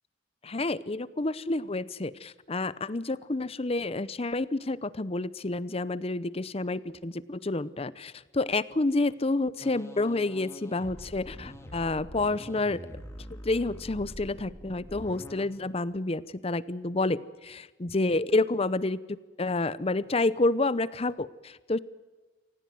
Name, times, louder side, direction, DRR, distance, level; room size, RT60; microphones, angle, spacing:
voice 1, 0.4-12.8 13.3-21.8, left 2 dB, 30° left, 18 dB, 0.7 m, -29 dB
sound 1, 9.6-15.5, equal, 15° left, 2.6 m, -44 dB
25.5 x 18.0 x 7.7 m, 1.3 s
head